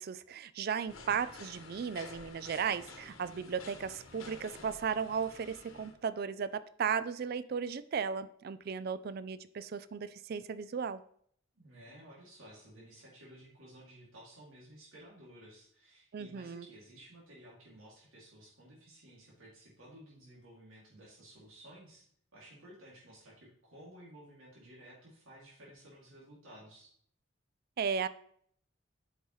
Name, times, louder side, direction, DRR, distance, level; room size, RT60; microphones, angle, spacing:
voice 1, 0.0-11.0 16.1-16.6 27.8-28.1, right 6 dB, 50° right, 15 dB, 0.3 m, -35 dB
sound 1, 0.9-5.9, left 3 dB, 85° left, 1.1 m, -51 dB
voice 2, 0.9-1.2 11.5-26.9, right 1 dB, 90° right, -5 dB, 2.5 m, -55 dB
8.1 x 5.5 x 3.1 m, 0.63 s
head